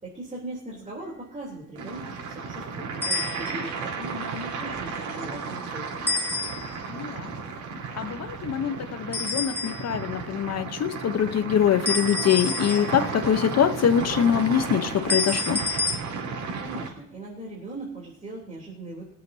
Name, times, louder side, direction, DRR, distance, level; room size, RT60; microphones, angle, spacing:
voice 1, 0.0-6.4 16.6-19.0, right 1 dB, 25° right, 3.4 m, -39 dB
sound 1, 1.8-16.9, right 5 dB, 85° right, 3.8 m, -34 dB
sound 2, 3.0-3.8 6.1-6.9 9.1-10.0 11.9-13.3 15.1-16.0, left 3 dB, 5° left, 2.2 m, -29 dB
voice 2, 6.9-7.3 8.0-15.6, left 9 dB, 60° left, 0.9 m, -24 dB
23.5 x 7.9 x 2.8 m
cardioid pair, 90°, 30 cm